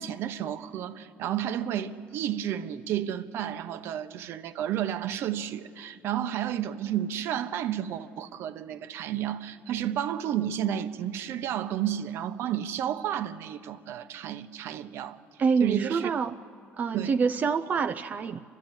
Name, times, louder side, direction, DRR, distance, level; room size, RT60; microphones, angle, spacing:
voice 1, 0.0-15.2 15.6-16.1 16.9-17.2, right 10 dB, 65° right, 0.9 m, -31 dB
voice 2, 15.4-16.3 16.8-18.4, right 5 dB, 35° right, 0.5 m, -26 dB
30.0 x 13.0 x 8.9 m
cardioid pair, 125°, 5 cm